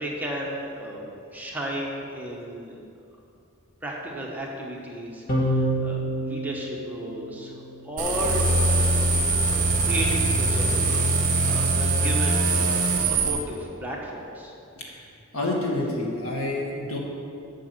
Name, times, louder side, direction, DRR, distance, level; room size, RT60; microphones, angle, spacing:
voice 1, 0.0-2.8 3.8-7.5 7.8-10.7 11.0-14.5, equal, 10° right, -3 dB, 1.2 m, -34 dB
sound 1, 5.3-7.9, right 1 dB, 40° left, 1.8 m, -28 dB
sound 2, 8.0-13.3, right 2 dB, 40° right, 1.2 m, -22 dB
voice 2, 15.3-17.0, left 2 dB, 80° left, -2 dB, 2.0 m, -28 dB
8.2 x 6.4 x 7.4 m, 2.6 s
head